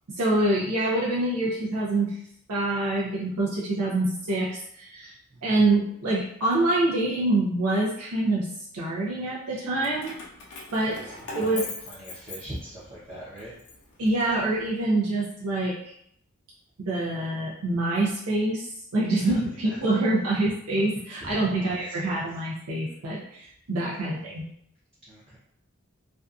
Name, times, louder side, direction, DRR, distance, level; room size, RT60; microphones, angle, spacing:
voice 1, 0.1-2.2 2.5-5.1 5.4-8.5 8.7-10.2 10.7-11.6 14.0-15.9 16.8-24.4, right 2 dB, 85° right, -5 dB, 0.5 m, -26 dB
Keys jangling, 9.8-12.9 13.4-14.7, left 3 dB, 75° left, 0.6 m, -40 dB
voice 2, 10.9-13.6 19.2-19.4 19.7-19.9 21.2-22.2 24.2-24.4 25.1-25.4, right 1 dB, 30° right, -8 dB, 0.6 m, -42 dB
2.6 x 2.3 x 2.3 m, 0.73 s
head